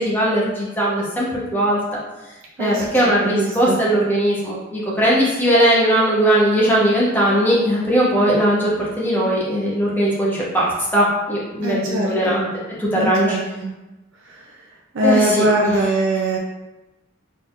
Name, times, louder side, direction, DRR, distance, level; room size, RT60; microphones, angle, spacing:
voice 1, 0.0-1.8 2.6-12.5 12.8-13.4 15.0-15.7, equal, 10° left, -6 dB, 0.9 m, -19 dB
voice 2, 3.2-3.8 11.6-12.4 12.9-13.7 14.3-14.7 14.9-16.4, right 1 dB, 60° right, -2 dB, 0.5 m, -22 dB
4.0 x 3.6 x 2.4 m, 1.0 s
head